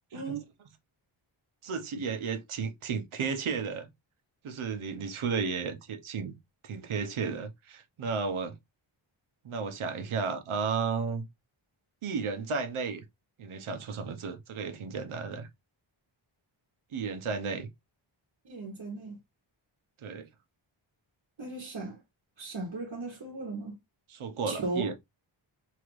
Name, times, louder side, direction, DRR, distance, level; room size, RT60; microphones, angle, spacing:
voice 1, 0.1-0.5 18.5-19.2 21.4-22.0 22.4-23.7 24.5-24.9, right 3 dB, 55° right, 1.2 m, -36 dB
voice 2, 1.6-3.9 4.4-6.3 6.6-8.5 9.4-11.3 12.0-13.0 13.4-15.5 16.9-17.7 20.0-20.3 24.1-24.9, right 5 dB, 80° right, 0.8 m, -33 dB
2.9 x 2.5 x 3.0 m
wide cardioid pair, 110°, 48 cm